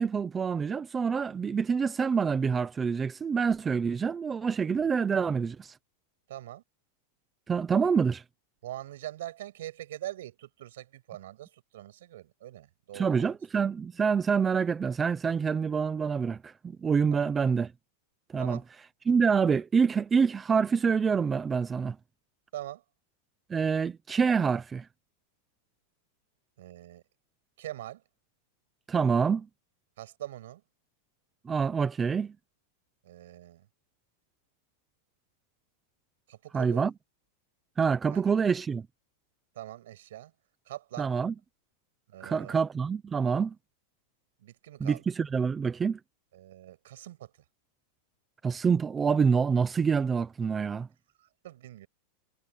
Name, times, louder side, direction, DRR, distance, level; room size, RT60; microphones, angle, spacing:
voice 1, 0.0-5.7 7.5-8.2 12.9-17.7 18.3-18.6 19.1-22.0 23.5-24.9 28.9-29.5 31.4-32.3 36.5-36.9 37.8-38.9 41.0-41.3 42.2-43.5 44.8-46.0 48.4-50.9, right 6 dB, 10° right, 0.8 m, -26 dB
voice 2, 6.3-6.6 7.8-7.9 8.6-13.4 17.1-17.3 18.4-18.6 22.5-22.8 26.6-27.0 27.6-28.0 30.0-30.6 33.0-33.7 36.3-36.9 38.1-38.2 39.5-40.3 40.7-41.1 42.1-42.6 44.4-45.0 46.3-47.3 51.2-51.9, right 13 dB, 70° right, 7.7 m, -43 dB
supercardioid pair, 175°, 0 cm